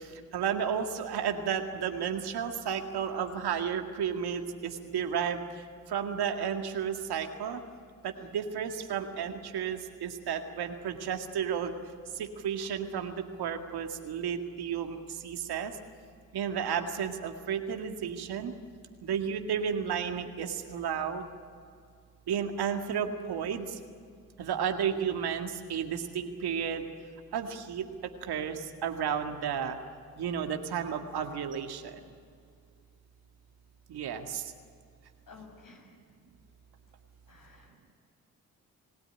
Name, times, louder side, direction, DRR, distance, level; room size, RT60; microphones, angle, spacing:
voice 1, 0.3-5.4 5.9-7.6 8.0-11.7 12.2-15.0 15.2-15.7 16.3-18.5 19.0-21.2 22.3-23.7 24.4-26.9 27.3-29.8 30.2-32.0 33.9-34.4, right 7 dB, 75° right, 6 dB, 2.0 m, -32 dB
voice 2, 35.3-35.9 37.3-37.7, left 4 dB, 55° left, 1 dB, 7.6 m, -52 dB
29.5 x 17.0 x 9.9 m, 2.2 s
hypercardioid pair, 40°, 39 cm